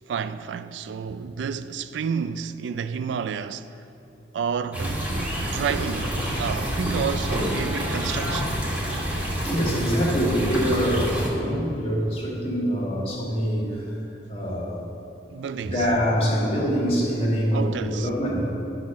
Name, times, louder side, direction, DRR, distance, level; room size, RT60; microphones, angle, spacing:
voice 1, 0.1-3.7 4.3-5.0 5.5-8.6 15.3-15.9 17.5-18.1, right 6 dB, 75° right, 0.3 m, -30 dB
sound 1, 4.7-11.3, right 1 dB, 10° right, 1.7 m, -27 dB
sound 2, 5.2-9.6, equal, 80° left, 1.0 m, -40 dB
voice 2, 9.4-14.0 14.3-14.9 15.6-18.5, equal, 35° left, 2.0 m, -25 dB
11.5 x 4.4 x 6.0 m
head